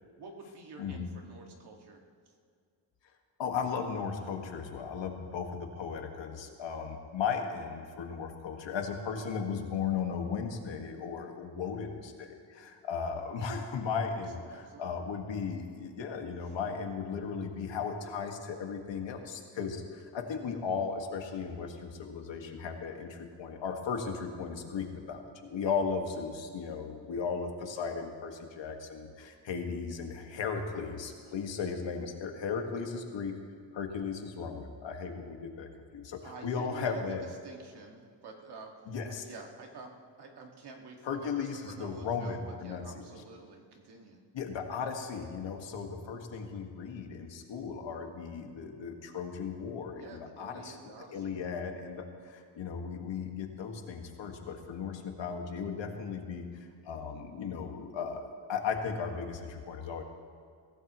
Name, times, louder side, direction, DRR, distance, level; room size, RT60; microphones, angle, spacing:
voice 1, 0.2-2.0 14.4-14.9 36.2-37.0 37.4-44.2 50.0-51.4, right 4 dB, 55° right, 1 dB, 2.0 m, -49 dB
voice 2, 0.8-1.1 3.4-33.3 33.7-37.2 38.9-39.2 41.0-43.1 44.3-60.0, left 6 dB, 70° left, 3 dB, 1.8 m, -36 dB
23.0 x 16.5 x 3.1 m, 2.2 s
wide cardioid pair, 150°, 46 cm